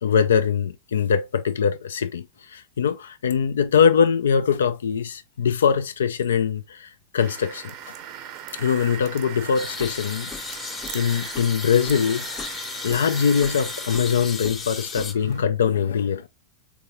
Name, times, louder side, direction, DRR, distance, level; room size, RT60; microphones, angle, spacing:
voice 1, 0.0-7.6 8.6-10.3 10.9-12.3 12.8-16.3, left 7 dB, 65° left, 0.4 m, -22 dB
sound 1, 7.2-15.4, right 9 dB, 45° right, 0.7 m, -39 dB
sound 2, 9.5-15.1, left 5 dB, 20° left, 0.7 m, -35 dB
4.1 x 3.5 x 2.3 m
figure-of-eight pair, 90°, 0 cm